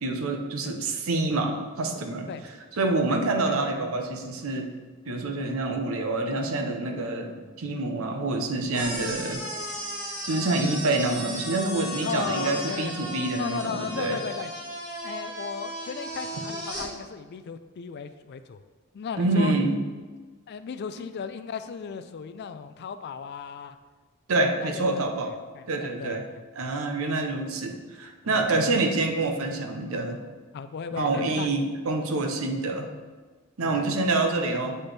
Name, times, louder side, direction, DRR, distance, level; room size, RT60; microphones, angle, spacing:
voice 1, 0.0-2.3 2.8-4.7 5.1-9.5 10.2-14.2 19.2-19.8 24.3-25.3 25.7-26.2 26.6-30.2 31.0-32.9 33.6-34.8, right 2 dB, 70° right, 4 dB, 0.7 m, -27 dB
voice 2, 3.1-3.6 12.0-12.9 13.4-14.5 15.0-18.6 18.9-19.5 20.5-23.8 24.4-26.4 26.7-26.8 28.3-28.4 30.5-31.5 33.6-33.8, left 6 dB, 50° left, 10 dB, 0.4 m, -36 dB
sound 1, 8.7-16.9, equal, 20° right, 1.6 m, -35 dB
7.7 x 4.3 x 3.3 m, 1.4 s
head